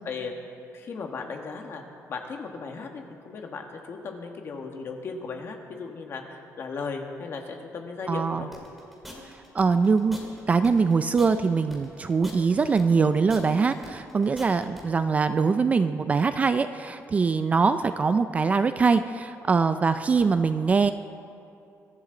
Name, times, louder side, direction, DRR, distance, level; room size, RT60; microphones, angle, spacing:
voice 1, 0.0-0.3 0.7-1.8 2.1-8.5, left 4 dB, 45° left, 3 dB, 1.5 m, -36 dB
voice 2, 8.1-8.4 9.5-10.2 10.5-20.9, right 5 dB, 25° right, 11 dB, 0.3 m, -23 dB
sound 1, 8.5-14.8, equal, ahead, 2.2 m, -44 dB
23.0 x 13.0 x 3.9 m, 2.6 s
cardioid pair, 180°, 6 cm